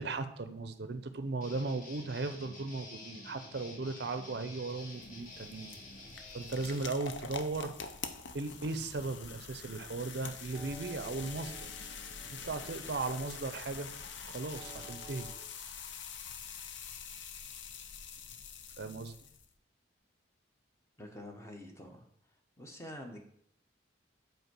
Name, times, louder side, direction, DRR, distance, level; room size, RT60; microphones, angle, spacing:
voice 1, 0.0-5.7 6.3-7.7 8.3-11.7 12.3-13.9 14.3-15.3 18.8-19.1, right 3 dB, 55° right, 10 dB, 0.5 m, -37 dB
Guitar, 1.4-6.8, left 2 dB, 40° left, 1.4 m, -49 dB
sound 1, 4.6-19.5, left 6 dB, 65° left, 0.6 m, -45 dB
sound 2, 9.4-15.3, right 4 dB, 25° right, 0.8 m, -53 dB
voice 2, 21.0-22.0 22.6-23.3, left 1 dB, 15° left, 3 dB, 0.8 m, -47 dB
5.5 x 4.5 x 6.0 m, 0.67 s
head